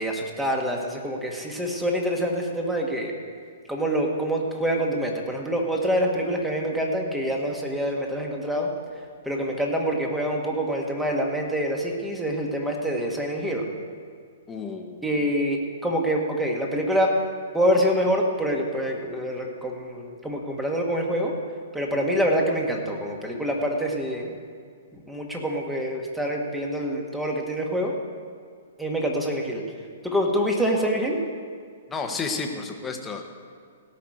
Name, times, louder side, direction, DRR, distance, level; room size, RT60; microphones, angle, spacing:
voice 1, 0.0-3.1 3.7-8.7 9.3-13.7 15.0-17.1 17.5-21.3 21.7-24.3 24.9-27.9 28.8-29.6 30.0-31.2, equal, 5° right, 0 dB, 1.9 m, -26 dB
voice 2, 14.5-15.1 31.9-33.2, left 4 dB, 15° left, 3 dB, 1.4 m, -31 dB
17.0 x 5.8 x 7.9 m, 2.1 s
figure-of-eight pair, 120°, 0 cm